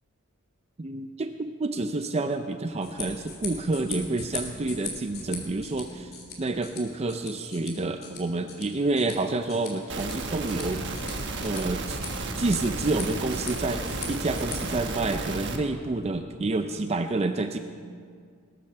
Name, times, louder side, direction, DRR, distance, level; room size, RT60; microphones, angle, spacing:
voice 1, 0.8-6.1 6.4-10.8 11.4-12.0 12.4-17.6, right 2 dB, 30° right, 8 dB, 0.5 m, -29 dB
sound 1, 2.7-14.6, left 5 dB, 45° left, 2.9 m, -41 dB
sound 2, 9.9-15.6, right 2 dB, 55° right, 1.4 m, -33 dB
20.0 x 9.0 x 6.6 m, 2.1 s
head